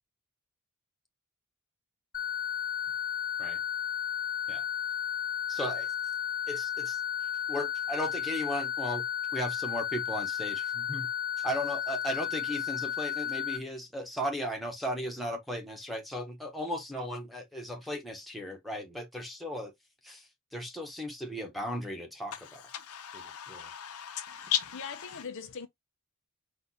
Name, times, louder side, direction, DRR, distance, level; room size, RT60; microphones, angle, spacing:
sound 1, 2.1-13.6, left 9 dB, 40° left, 1.0 m, -33 dB
voice 1, 5.5-5.9 6.5-7.0 7.5-9.0 9.3-11.1 11.4-19.7 20.0-22.6 23.1-23.7, equal, ahead, 1.1 m, -36 dB
voice 2, 22.3-25.2, left 10 dB, 85° left, 0.9 m, -36 dB
voice 3, 24.3-25.7, left 6 dB, 60° left, 0.5 m, -42 dB
4.3 x 2.5 x 4.1 m
head